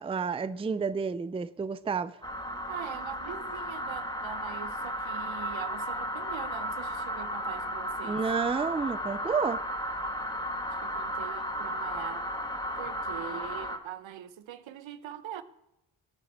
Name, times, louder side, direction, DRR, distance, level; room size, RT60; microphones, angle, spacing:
voice 1, 0.0-2.1 8.0-9.6, right 5 dB, 15° right, 0.4 m, -30 dB
sound 1, 2.2-13.8, equal, 10° left, 1.5 m, -34 dB
voice 2, 2.7-8.2 10.7-12.2 12.8-15.4, right 10 dB, 75° right, 1.0 m, -42 dB
18.0 x 9.2 x 4.4 m
cardioid pair, 75°, 46 cm